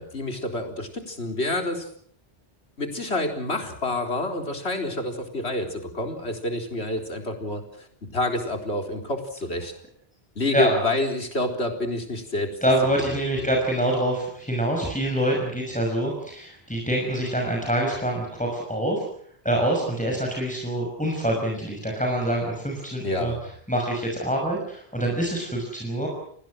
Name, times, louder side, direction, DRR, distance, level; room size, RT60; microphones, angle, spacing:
voice 1, 0.0-1.9 2.8-7.9 8.1-9.7 10.4-12.6 13.0-13.5 23.0-23.4, left 2 dB, 90° left, 4 dB, 4.2 m, -28 dB
voice 2, 12.6-19.0 19.4-23.3 23.7-26.1, right 1 dB, 5° left, -1 dB, 6.0 m, -25 dB
29.5 x 20.0 x 6.4 m, 0.63 s
omnidirectional pair, 1.1 m